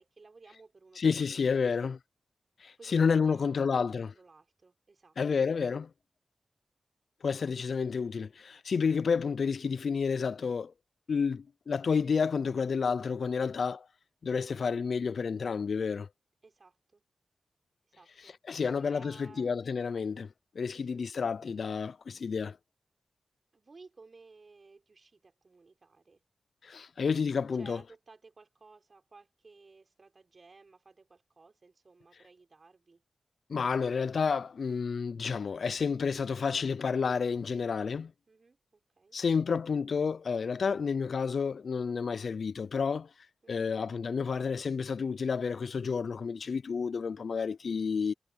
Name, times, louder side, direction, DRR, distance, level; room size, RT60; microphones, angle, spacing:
voice 1, 0.0-2.0 2.8-5.4 13.4-13.7 16.4-17.0 17.9-19.5 20.7-21.1 23.5-26.2 27.5-33.0 38.3-39.2 43.4-43.8, right 3 dB, 55° right, 5.9 m, -57 dB
voice 2, 1.0-2.0 2.6-4.1 5.2-5.9 7.2-10.7 11.1-13.8 14.2-16.1 18.5-22.6 26.6-27.8 33.5-38.1 39.1-43.1 43.5-48.1, left 5 dB, 75° left, 0.4 m, -30 dB
cardioid pair, 45°, 0 cm